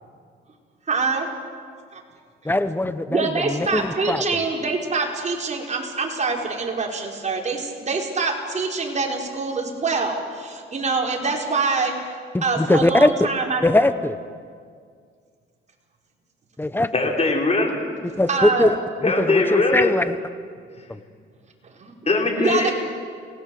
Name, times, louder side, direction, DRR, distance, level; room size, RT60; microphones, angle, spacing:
voice 1, 0.9-1.3 1.9-2.0 2.4-2.5 3.1-11.9 12.4-13.6 18.3-18.7 21.8-21.9 22.4-22.7, right 4 dB, 35° right, 0 dB, 5.1 m, -25 dB
voice 2, 2.4-4.2 12.3-13.3 13.6-14.2 16.6-16.9 18.2-18.8 19.0-20.2 20.9-21.0, left 1 dB, 10° left, 12 dB, 1.3 m, -20 dB
voice 3, 16.9-17.8 19.0-19.9 22.1-22.7, left 3 dB, 30° left, 1 dB, 5.1 m, -20 dB
29.0 x 18.5 x 8.0 m, 2.1 s
cardioid pair, 90°, 20 cm